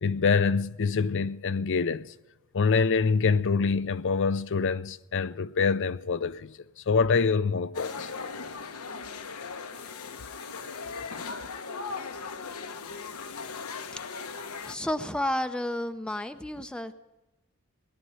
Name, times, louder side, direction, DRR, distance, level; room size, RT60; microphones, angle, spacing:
voice 1, 0.0-2.1 2.5-6.5 6.9-8.1, left 5 dB, 55° left, 0.5 m, -25 dB
sound 1, 7.7-14.8, left 5 dB, 85° left, 1.0 m, -38 dB
voice 2, 14.6-16.9, left 1 dB, 5° left, 0.5 m, -31 dB
17.5 x 11.5 x 5.6 m
head